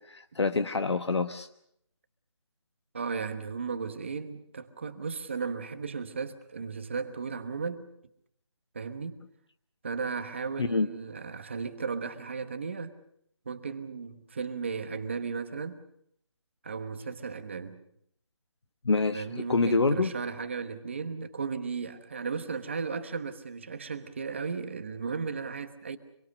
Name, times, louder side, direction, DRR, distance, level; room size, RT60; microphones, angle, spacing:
voice 1, 0.1-1.5 10.6-10.9 18.8-20.1, left 3 dB, 65° left, 1.2 m, -26 dB
voice 2, 2.9-7.9 8.7-9.2 9.8-12.9 13.4-15.8 16.6-17.8 19.1-26.0, right 5 dB, 25° right, 1.1 m, -35 dB
25.5 x 23.0 x 6.4 m
figure-of-eight pair, 175°, 16 cm